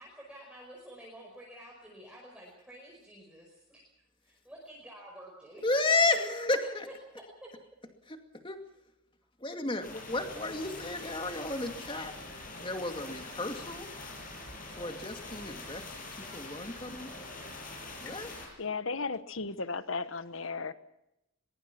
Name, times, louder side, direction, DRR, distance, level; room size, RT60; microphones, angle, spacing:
voice 1, 0.0-3.9 4.2-5.6 6.9-7.5, right 1 dB, 5° right, -3 dB, 5.2 m, -50 dB
voice 2, 5.6-6.9 8.1-8.2 8.4-8.6 9.4-12.1 12.6-13.9 14.8-15.8 16.2-17.1 18.0-18.3, left 2 dB, 25° left, 6 dB, 2.3 m, -32 dB
sound 1, 9.8-18.5, left 2 dB, 40° left, 7.9 m, -44 dB
voice 3, 18.6-20.7, left 4 dB, 70° left, 13 dB, 1.2 m, -35 dB
23.0 x 22.5 x 6.0 m, 0.86 s
head